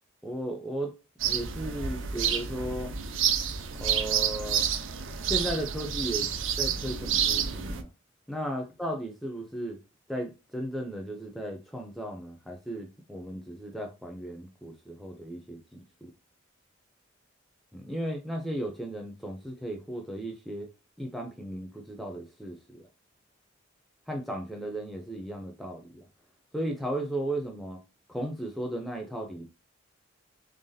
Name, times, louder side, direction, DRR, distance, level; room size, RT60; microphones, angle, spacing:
voice 1, 0.2-0.9 1.2-3.0 3.8-4.7 5.3-7.9 8.3-9.8 10.1-16.1 17.7-20.7 21.0-22.8 24.1-26.1 26.5-27.8 28.1-29.5, right 1 dB, ahead, 0.5 m, -35 dB
sound 1, 1.2-7.8, right 8 dB, 80° right, 0.5 m, -29 dB
3.9 x 3.4 x 2.6 m
head